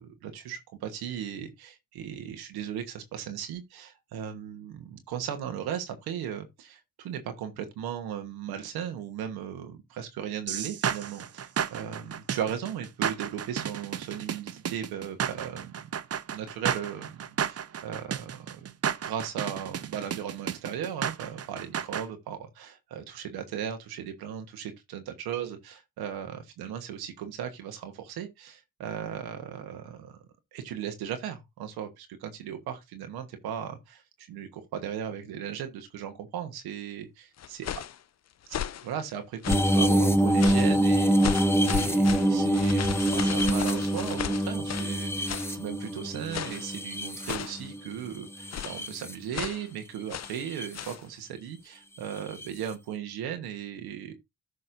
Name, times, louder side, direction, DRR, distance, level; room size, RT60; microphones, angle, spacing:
voice 1, 0.0-15.9 16.3-18.7 19.0-30.3 30.5-37.7 38.8-54.1, right 9 dB, 90° right, 1.2 m, -37 dB
sound 1, 10.5-22.1, right 8 dB, 40° right, 0.7 m, -32 dB
sound 2, 37.4-38.0 38.4-38.9 39.4-39.8 40.4-40.8 41.2-45.0 45.3-45.5 46.3-46.7 47.2-47.7 48.5-48.8 49.3-49.6 50.1-50.4 50.7-51.0, left 10 dB, 45° left, 0.6 m, -35 dB
sound 3, 39.5-47.8 48.4-49.1 50.3-50.7 52.4-52.5, right 1 dB, 5° left, 1.2 m, -25 dB
14.0 x 5.3 x 2.6 m
supercardioid pair, 55°, 37 cm